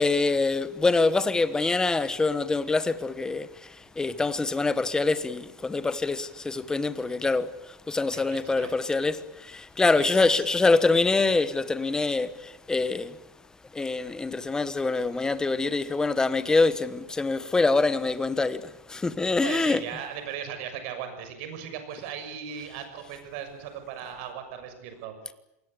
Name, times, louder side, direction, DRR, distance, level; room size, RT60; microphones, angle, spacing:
voice 1, 0.0-13.2 13.7-19.8, left 3 dB, 10° left, 1.2 m, -25 dB
voice 2, 8.1-8.7 9.9-10.4 19.4-25.3, right 8 dB, 55° right, 6.6 m, -38 dB
28.0 x 20.0 x 8.3 m
supercardioid pair, 150°, 8 cm